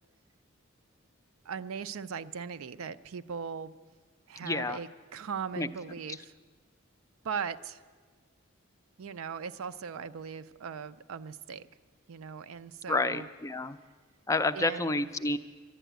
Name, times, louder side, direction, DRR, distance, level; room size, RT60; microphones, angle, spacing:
voice 1, 1.4-3.7 4.3-6.3 7.2-7.8 9.0-11.6 12.1-13.3 14.5-15.1, right 6 dB, 85° right, 13 dB, 0.5 m, -39 dB
voice 2, 4.4-4.8 5.6-5.7 12.9-13.8 14.3-15.4, left 2 dB, 15° left, 11 dB, 0.3 m, -29 dB
11.0 x 11.0 x 9.1 m, 1.5 s
head